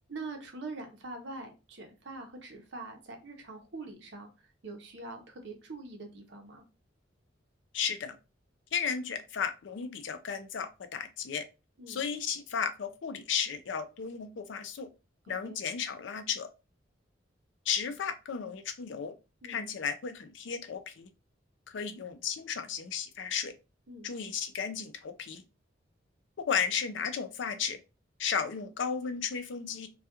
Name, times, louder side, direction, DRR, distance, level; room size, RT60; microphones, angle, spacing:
voice 1, 0.1-6.6 11.8-12.0 15.4-15.6 19.4-19.6 23.9-24.1, right 3 dB, 65° right, 0.7 m, -44 dB
voice 2, 7.7-8.2 8.7-11.4 11.9-14.9 15.3-16.5 17.7-19.1 19.4-21.1 21.7-23.5 24.0-25.4 26.4-27.8 28.2-29.9, left 6 dB, 75° left, 0.4 m, -34 dB
2.3 x 2.2 x 2.8 m
head